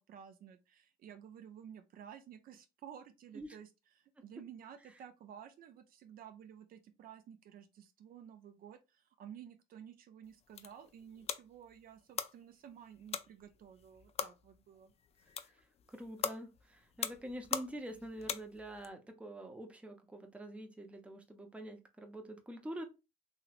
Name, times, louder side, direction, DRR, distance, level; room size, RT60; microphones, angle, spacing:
voice 1, 0.0-14.9, right 9 dB, 60° right, 0.5 m, -53 dB
sound 1, 10.2-18.9, left 8 dB, 40° left, 0.3 m, -43 dB
voice 2, 15.9-22.8, right 1 dB, 5° right, 0.6 m, -46 dB
2.9 x 2.9 x 2.4 m
cardioid pair, 110°, 17 cm